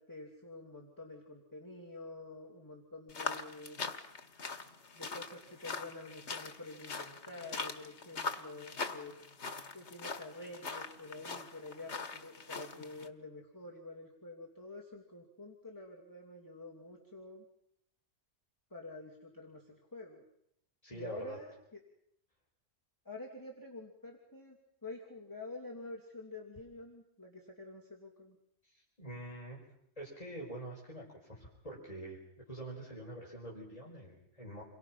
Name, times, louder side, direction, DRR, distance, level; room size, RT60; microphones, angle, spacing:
voice 1, 0.0-3.8 4.9-9.1 9.7-17.4 18.7-20.2 20.9-21.8 23.0-28.4, left 2 dB, 15° left, -2 dB, 2.9 m, -48 dB
sound 1, 3.1-13.1, left 4 dB, 85° left, 1.9 m, -42 dB
voice 2, 20.8-21.4 28.6-29.6 30.0-32.2 32.5-34.6, right 1 dB, 35° left, -4 dB, 5.1 m, -45 dB
29.0 x 23.5 x 5.9 m, 0.75 s
omnidirectional pair, 1.1 m